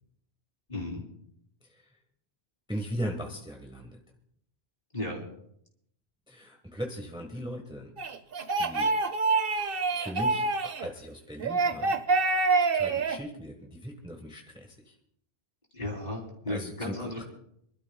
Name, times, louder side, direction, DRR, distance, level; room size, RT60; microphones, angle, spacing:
voice 1, 0.7-1.1 4.9-5.2 15.7-17.2, left 1 dB, 40° left, 0 dB, 3.5 m, -35 dB
voice 2, 2.7-4.0 6.3-7.9 8.6-8.9 9.9-12.0 12.7-14.9 16.5-17.2, equal, 5° right, 2 dB, 1.4 m, -38 dB
sound 1, 8.0-10.9 11.4-13.2, right 3 dB, 55° right, 1.1 m, -26 dB
26.5 x 12.5 x 2.3 m, 0.72 s
omnidirectional pair, 1.2 m